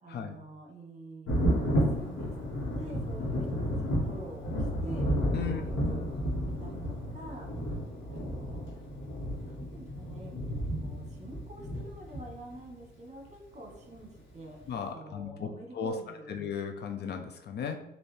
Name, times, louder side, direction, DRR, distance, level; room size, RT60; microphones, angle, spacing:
voice 1, 0.0-5.0 5.3-6.0 6.4-7.5 8.0-8.9 9.4-14.6 14.9-16.3, right 1 dB, 35° right, 0 dB, 1.3 m, -47 dB
Thunder, 1.3-12.7 14.0-14.1 14.6-14.7, equal, 75° left, 1.4 m, -32 dB
voice 2, 14.7-16.0 16.3-17.8, left 7 dB, 55° left, 5 dB, 0.5 m, -35 dB
4.2 x 2.7 x 3.3 m, 0.85 s
cardioid pair, 90°, 20 cm